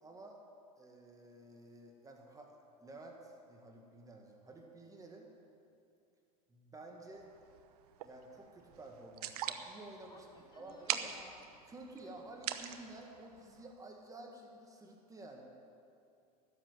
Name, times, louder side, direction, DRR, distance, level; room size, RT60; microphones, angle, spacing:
voice 1, 0.0-0.4 0.8-5.3 6.5-7.3 8.0-10.3 10.5-11.1 11.7-15.4, right 2 dB, 15° right, 1 dB, 1.8 m, -52 dB
sound 1, 7.1-13.7, right 10 dB, 75° right, 0.9 m, -44 dB
voice 2, 10.1-11.5 12.0-12.3, left 3 dB, 20° left, 2 dB, 1.8 m, -58 dB
13.0 x 7.5 x 9.5 m, 2.5 s
hypercardioid pair, 105°, 20 cm